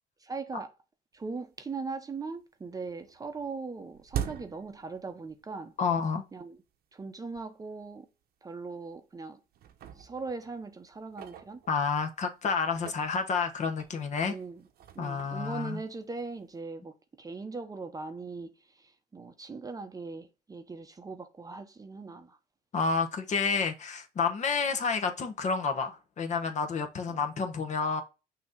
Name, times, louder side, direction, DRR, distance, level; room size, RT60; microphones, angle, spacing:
voice 1, 0.3-0.7 1.1-5.7 6.3-6.6 6.9-8.1 8.4-9.4 10.0-11.6 14.2-14.7 14.9-22.4 27.1-27.3, right 4 dB, 20° right, 0.8 m, -40 dB
sound 1, 1.3-1.4 1.8-2.4 2.7-5.6 5.9-6.0 6.7-6.8 7.3-7.4 7.8-7.9 8.7-9.2 9.5-12.1 12.6-16.5, right 10 dB, 65° right, 0.9 m, -43 dB
voice 2, 5.8-6.2 11.7-14.3 15.0-15.8 22.7-28.0, left 5 dB, 45° left, 1.1 m, -29 dB
6.1 x 2.9 x 5.2 m
cardioid pair, 110°, 17 cm